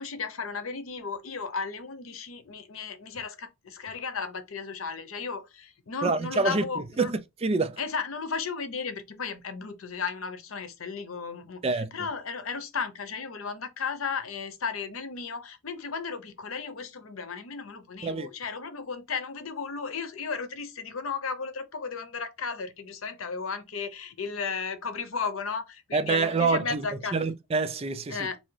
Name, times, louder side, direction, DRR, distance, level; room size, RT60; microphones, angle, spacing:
voice 1, 0.0-7.1 7.8-27.2 28.1-28.4, left 5 dB, 85° left, 0.8 m, -35 dB
voice 2, 6.0-7.8 11.6-11.9 18.0-18.3 25.9-26.9 27.1-28.3, right 4 dB, 30° right, 0.4 m, -27 dB
3.5 x 2.8 x 3.2 m
head